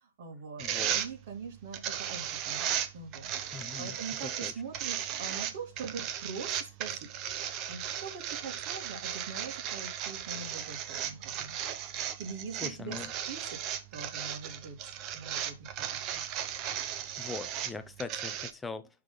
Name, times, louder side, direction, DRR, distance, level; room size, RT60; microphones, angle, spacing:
voice 1, 0.0-0.6 0.9-2.7 2.9-7.1 7.7-10.8 11.0-11.6 12.0-13.0 13.3-13.5 13.9-16.2, right 5 dB, 50° right, 2.8 m, -43 dB
voice 2, 0.6-1.0 3.5-3.9 4.2-4.5 12.6-13.1 17.2-18.9, left 4 dB, 10° left, 0.8 m, -41 dB
sound 1, 0.6-18.5, right 10 dB, 30° right, 0.8 m, -36 dB
11.5 x 3.8 x 4.0 m
hypercardioid pair, 125°, 0 cm